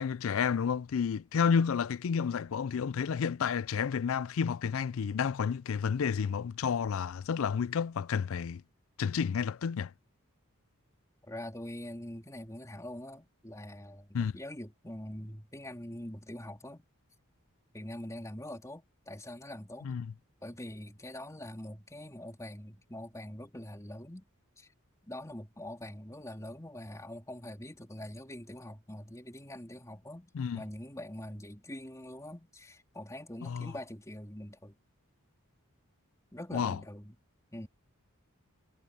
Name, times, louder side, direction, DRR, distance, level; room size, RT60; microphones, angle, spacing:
voice 1, 0.0-8.6 9.0-9.9 14.1-14.3 19.8-20.1 30.3-30.6 33.4-33.7 36.5-36.8, left 6 dB, 65° left, 0.4 m, -30 dB
voice 2, 11.3-16.9 17.7-19.9 20.4-24.3 24.6-24.7 25.0-34.7 36.3-37.1 37.5-37.7, left 1 dB, 15° left, 3.7 m, -44 dB
head